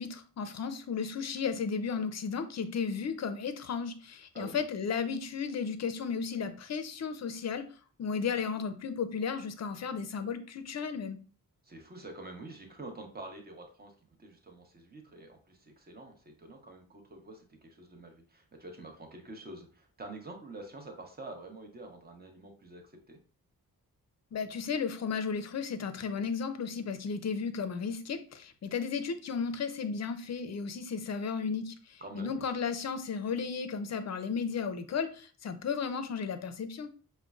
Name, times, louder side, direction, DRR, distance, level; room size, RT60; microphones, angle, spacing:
voice 1, 0.0-7.7 8.0-11.2 24.3-36.9, left 6 dB, 50° left, 9 dB, 0.5 m, -34 dB
voice 2, 11.6-23.2 32.0-32.4, right 2 dB, 25° right, 3 dB, 0.8 m, -47 dB
5.0 x 2.2 x 2.3 m, 0.39 s
wide cardioid pair, 100°, 36 cm